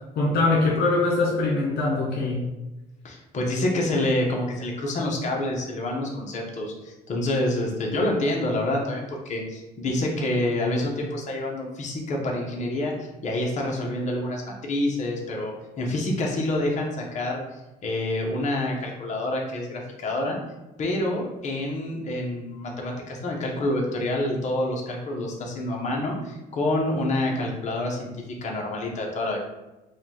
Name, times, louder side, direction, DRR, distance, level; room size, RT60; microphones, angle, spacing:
voice 1, 0.2-2.5, left 2 dB, 70° left, -2 dB, 0.7 m, -22 dB
voice 2, 3.0-17.4 17.8-20.4 20.8-28.1 28.4-29.4, left 1 dB, 45° left, 0 dB, 0.9 m, -27 dB
4.8 x 2.3 x 2.9 m, 1.0 s
cardioid pair, 110°, 17 cm